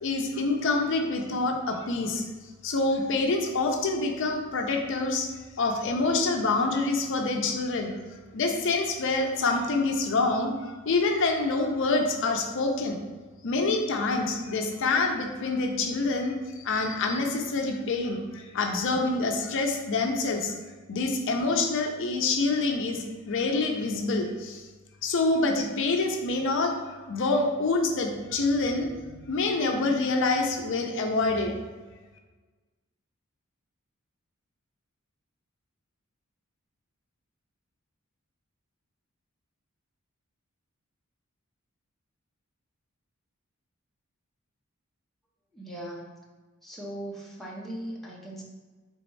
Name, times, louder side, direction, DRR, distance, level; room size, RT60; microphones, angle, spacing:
voice 1, 0.0-2.2 2.6-5.3 5.6-7.9 8.3-13.0 13.4-20.6 20.9-24.6 25.0-26.7 27.1-31.5, left 3 dB, 60° left, 3 dB, 0.5 m, -26 dB
voice 2, 45.5-46.1 46.6-48.4, right 1 dB, ahead, -4 dB, 0.6 m, -39 dB
4.1 x 3.4 x 3.1 m, 1.3 s
head